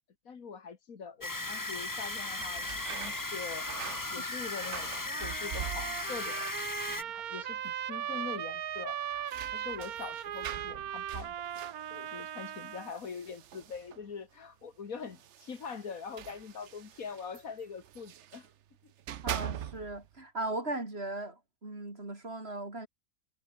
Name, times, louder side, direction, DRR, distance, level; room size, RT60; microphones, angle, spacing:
voice 1, 0.3-6.5 6.9-11.4 11.9-18.5 18.8-18.9, left 5 dB, 70° left, 2.1 m, -43 dB
sound 1, 1.2-7.0, left 2 dB, 15° left, 1.0 m, -37 dB
sound 2, 1.9-6.3 6.6-7.2 7.5-7.6 8.7-14.1 15.0-18.5 18.9-20.1, right 10 dB, 60° right, 1.0 m, -44 dB
Trumpet, 5.1-12.9, right 10 dB, 85° right, 1.5 m, -38 dB
voice 2, 19.2-22.9, right 2 dB, 45° right, 4.5 m, -38 dB
omnidirectional pair, 1.5 m